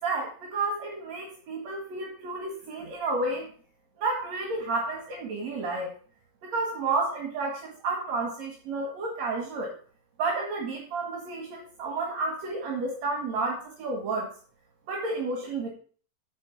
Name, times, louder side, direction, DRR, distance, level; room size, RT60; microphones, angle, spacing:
voice 1, 0.0-3.5 4.0-5.9 6.4-9.7 10.2-14.3 14.9-15.7, right 3 dB, 50° right, 1 dB, 2.8 m, -31 dB
9.3 x 7.4 x 7.4 m, 0.43 s
omnidirectional pair, 4.6 m